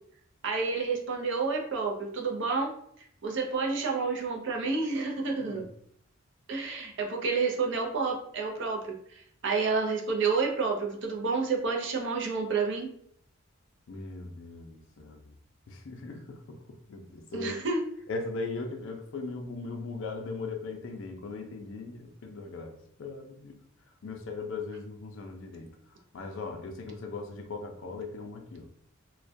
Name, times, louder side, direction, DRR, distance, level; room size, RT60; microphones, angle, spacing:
voice 1, 0.4-2.7 3.2-5.6 6.5-9.0 9.4-12.9 17.3-17.8, right 4 dB, 55° right, 1 dB, 0.5 m, -29 dB
voice 2, 13.9-15.2 15.7-16.6 16.9-17.5 18.1-23.6 24.0-25.7 26.1-28.7, left 3 dB, 60° left, 5 dB, 0.4 m, -39 dB
2.3 x 2.1 x 2.5 m, 0.65 s
head